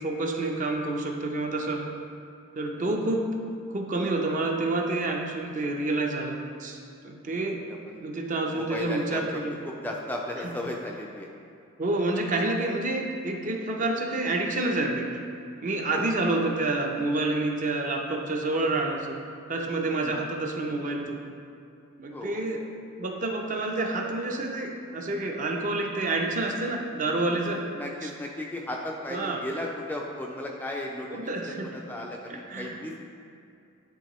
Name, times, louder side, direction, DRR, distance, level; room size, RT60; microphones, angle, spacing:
voice 1, 0.0-1.8 2.5-6.8 7.0-7.6 8.0-9.5 11.8-15.2 15.6-19.2 19.5-21.2 22.0-22.6 23.0-27.6 28.0-28.1 29.1-29.4 31.1-31.8 32.3-32.8, right 2 dB, 40° right, 1 dB, 0.6 m, -28 dB
voice 2, 7.7-8.0 8.5-11.3 15.9-16.2 20.0-20.2 22.1-22.4 27.4-33.0, left 1 dB, 10° left, -1 dB, 0.3 m, -35 dB
10.5 x 3.6 x 3.0 m, 2.6 s
head